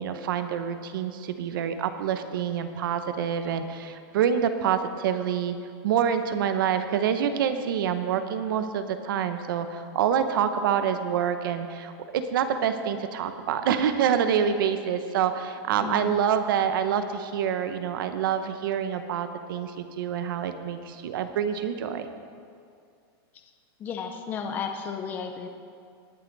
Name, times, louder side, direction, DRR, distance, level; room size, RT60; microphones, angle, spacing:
voice 1, 0.0-5.6 5.8-22.1, right 8 dB, 55° right, 9 dB, 0.9 m, -27 dB
voice 2, 15.8-16.2 23.8-25.5, left 6 dB, 15° left, 4 dB, 0.5 m, -33 dB
19.0 x 8.0 x 4.0 m, 2.3 s
supercardioid pair, 175°, 13 cm